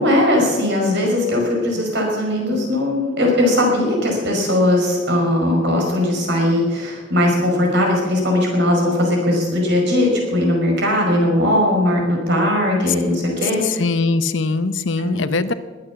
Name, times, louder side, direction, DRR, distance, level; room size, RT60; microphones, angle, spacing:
voice 1, 0.0-13.8 15.0-15.4, left 1 dB, 65° right, 0 dB, 5.2 m, -19 dB
voice 2, 13.6-15.5, left 3 dB, 75° left, 13 dB, 0.9 m, -21 dB
20.5 x 8.9 x 7.2 m, 1.3 s
head